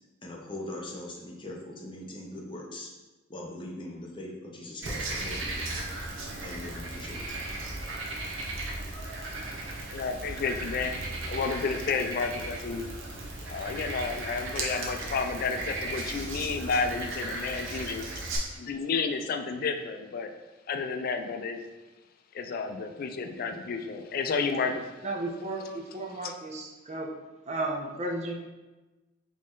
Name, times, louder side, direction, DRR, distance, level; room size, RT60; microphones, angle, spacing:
voice 1, 0.2-2.9 3.3-5.7 6.4-7.5, left 1 dB, 25° left, -2 dB, 0.7 m, -41 dB
Frog, 4.8-18.4, right 2 dB, 75° right, 0.8 m, -36 dB
voice 2, 9.5-12.9 13.5-18.2 18.5-20.3 20.7-21.6 22.3-24.9 26.2-26.3, left 4 dB, 50° left, 6 dB, 0.4 m, -31 dB
voice 3, 25.0-25.6 25.9-27.1 27.5-28.3, right 2 dB, 35° right, 0 dB, 0.6 m, -33 dB
4.2 x 3.1 x 3.7 m, 1.1 s
head